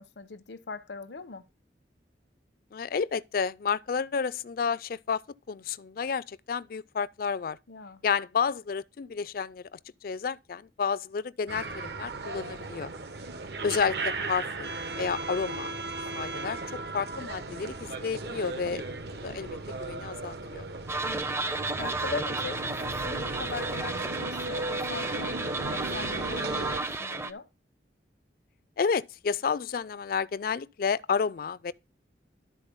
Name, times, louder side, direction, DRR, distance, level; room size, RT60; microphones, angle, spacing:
voice 1, 0.0-1.4 7.7-8.0 21.0-21.2 21.8-26.7 27.0-27.5, left 4 dB, 80° left, 0.8 m, -40 dB
voice 2, 2.7-5.2 5.5-7.6 8.0-12.9 13.6-15.8 16.1-16.6 16.9-20.6 28.8-31.7, left 6 dB, 55° left, 0.4 m, -31 dB
sound 1, 11.5-26.8, right 3 dB, 65° right, 0.9 m, -36 dB
sound 2, 20.9-27.3, right 3 dB, 15° right, 0.5 m, -33 dB
12.0 x 4.3 x 5.3 m
head